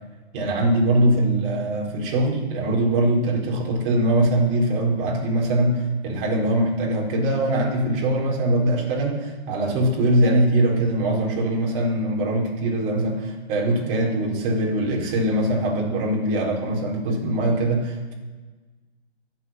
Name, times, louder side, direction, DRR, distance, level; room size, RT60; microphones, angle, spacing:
voice 1, 0.3-18.1, right 1 dB, 35° right, -2 dB, 4.3 m, -22 dB
12.0 x 9.5 x 7.5 m, 1.3 s
figure-of-eight pair, 120°, 33 cm